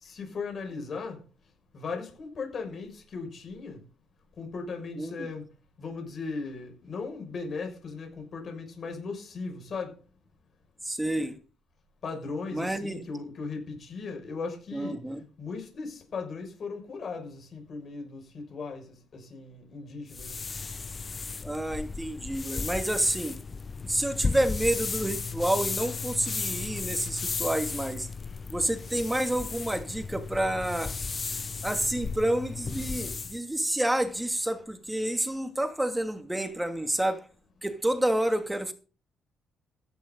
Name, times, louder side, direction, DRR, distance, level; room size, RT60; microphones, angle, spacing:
voice 1, 0.0-1.2 1.7-3.8 4.4-5.4 5.8-9.9 12.0-15.0 15.4-18.8 19.1-20.4, left 4 dB, 50° left, 6.4 m, -37 dB
voice 2, 5.0-5.3 10.8-11.4 12.5-13.0 14.7-15.2 21.4-23.4 23.8-28.1 28.5-30.9 31.6-37.2 37.6-38.7, right 1 dB, 10° right, 2.6 m, -29 dB
sound 1, 20.1-33.4, left 4 dB, 30° left, 0.8 m, -35 dB
15.0 x 11.5 x 4.0 m
cardioid pair, 90°, 0 cm